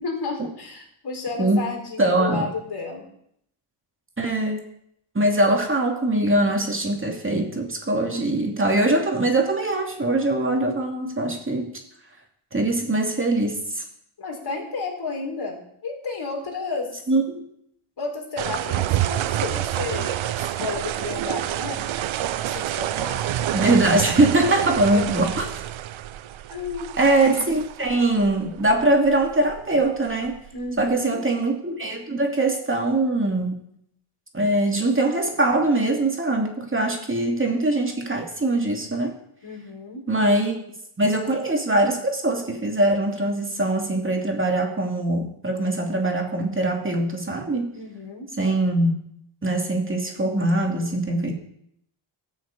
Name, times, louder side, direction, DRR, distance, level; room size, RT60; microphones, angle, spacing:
voice 1, 0.0-3.1 14.2-17.0 18.0-21.9 22.4-23.2 24.9-25.4 26.5-27.0 30.5-31.2 39.4-40.0 47.7-48.3, left 4 dB, 50° left, 1 dB, 4.4 m, -32 dB
voice 2, 2.0-2.5 4.2-4.6 5.1-11.7 12.5-13.8 17.1-17.4 23.5-25.5 27.0-30.4 30.8-33.6 34.3-39.1 40.1-40.6 41.0-47.7 48.4-48.9 49.4-51.3, right 2 dB, 25° right, 2 dB, 2.6 m, -22 dB
sound 1, 18.4-30.9, right 12 dB, 70° right, 0.8 m, -28 dB
13.0 x 6.5 x 8.4 m, 0.73 s
cardioid pair, 85°, 50 cm